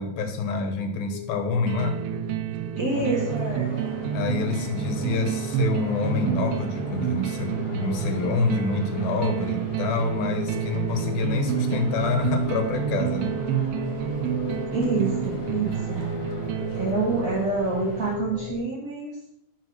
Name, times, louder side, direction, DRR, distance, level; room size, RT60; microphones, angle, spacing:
voice 1, 0.0-2.0 4.1-13.4, left 4 dB, 85° left, 5 dB, 3.1 m, -27 dB
sound 1, 1.1-18.6, left 4 dB, 45° left, 0.4 m, -37 dB
sound 2, 1.7-17.6, right 10 dB, 90° right, 2.5 m, -29 dB
voice 2, 2.8-3.7 14.7-16.0 16.7-19.2, right 3 dB, 30° right, -7 dB, 1.8 m, -27 dB
sound 3, 2.9-18.2, left 2 dB, 60° left, 3.6 m, -42 dB
11.0 x 4.7 x 6.5 m, 0.82 s
omnidirectional pair, 4.1 m